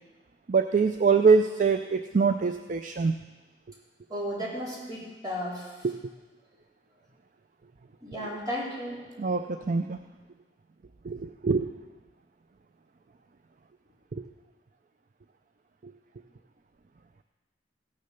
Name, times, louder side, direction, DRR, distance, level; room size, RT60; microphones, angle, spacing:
voice 1, 0.5-3.1 5.8-6.1 9.2-10.0 11.0-11.7 14.1-14.3 15.8-15.9, right 5 dB, 45° right, 7 dB, 0.4 m, -24 dB
voice 2, 4.1-5.9 6.5-6.6 8.0-9.3, equal, 25° right, -7 dB, 4.1 m, -35 dB
16.0 x 6.6 x 6.7 m, 1.2 s
head